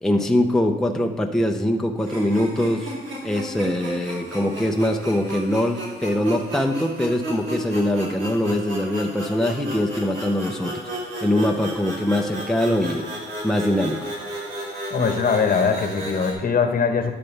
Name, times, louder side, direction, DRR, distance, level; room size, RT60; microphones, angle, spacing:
voice 1, 0.0-2.9 3.2-10.8 11.2-13.1 13.4-14.0, left 1 dB, ahead, 3 dB, 0.7 m, -22 dB
sound 1, 2.0-16.3, right 1 dB, 70° right, 3.1 m, -33 dB
voice 2, 14.9-17.1, left 5 dB, 45° left, 6 dB, 1.1 m, -21 dB
12.5 x 6.7 x 3.4 m, 1.3 s
cardioid pair, 90°, 20 cm